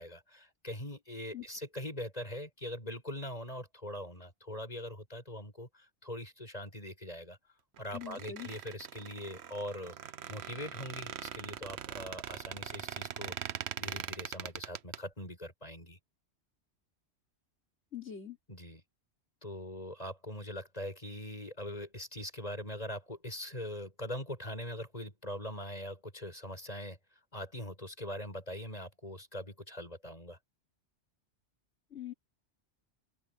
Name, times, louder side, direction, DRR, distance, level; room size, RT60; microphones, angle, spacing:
voice 1, 0.0-7.4 7.8-16.0 18.5-18.8 19.4-27.0 27.3-30.4, left 1 dB, 35° left, 8.0 m, -42 dB
Squeak, 7.8-15.0, right 9 dB, 70° right, 1.0 m, -42 dB
voice 2, 7.9-8.5 17.9-18.4 31.9-32.1, left 9 dB, 80° left, 3.9 m, -42 dB
open air
omnidirectional pair, 1.2 m